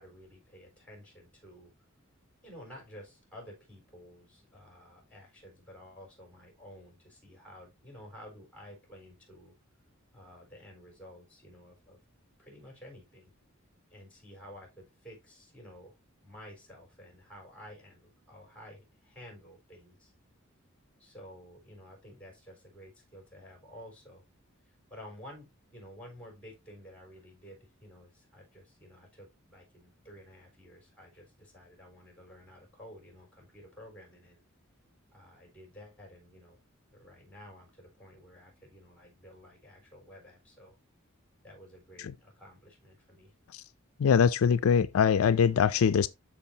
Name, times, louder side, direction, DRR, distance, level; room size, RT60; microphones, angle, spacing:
voice 1, 0.0-1.7 2.4-9.5 10.1-12.0 12.4-13.3 13.9-16.0 16.2-20.1 21.0-24.3 24.6-34.4 35.1-36.6 36.9-40.8 41.4-43.3, equal, 5° left, 4.4 m, -52 dB
voice 2, 44.0-46.1, left 7 dB, 70° left, 0.4 m, -23 dB
12.5 x 4.6 x 2.8 m
head